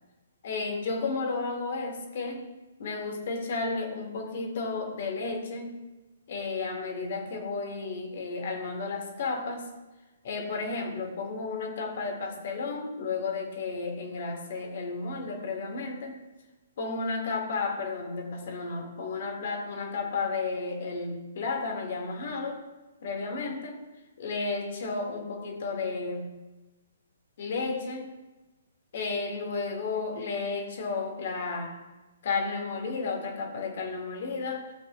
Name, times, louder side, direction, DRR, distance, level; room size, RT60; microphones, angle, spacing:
voice 1, 0.4-2.5 2.8-5.8 6.3-9.7 10.2-16.2 16.8-22.6 23.0-23.8 24.2-26.2 27.4-28.1 28.9-31.8 32.2-34.7, left 4 dB, 50° left, 2 dB, 2.1 m, -32 dB
15.0 x 7.9 x 2.6 m, 1.1 s
figure-of-eight pair, 125°, 0 cm